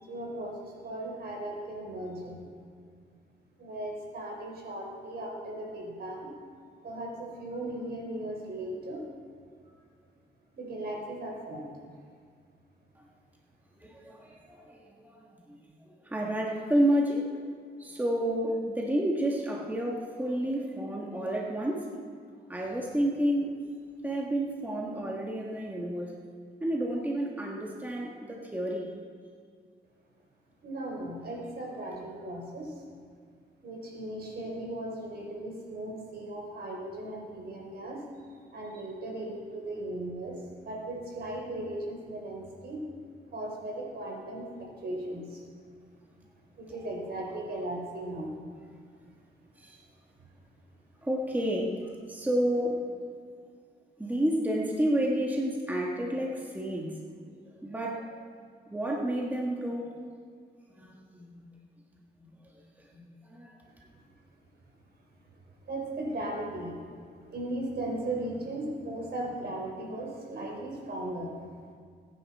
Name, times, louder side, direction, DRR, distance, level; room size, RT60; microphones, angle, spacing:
voice 1, 0.0-2.5 3.6-6.3 6.8-9.0 10.5-11.7 30.6-32.7 33.6-38.0 38.5-42.8 43.3-45.4 46.6-48.3 65.7-66.7 67.3-71.3, right 1 dB, 65° right, -1 dB, 4.1 m, -37 dB
voice 2, 13.8-15.6 16.0-17.3 17.8-21.9 22.5-23.7 24.0-26.1 26.6-28.9 46.7-47.3 49.6-49.8 51.0-52.9 54.0-57.3 57.6-58.2 58.7-59.9 60.8-61.4 62.2-62.3 62.9-63.5, right 1 dB, 10° right, -1 dB, 1.6 m, -30 dB
21.0 x 9.8 x 4.3 m, 2.1 s
cardioid pair, 100°, 18 cm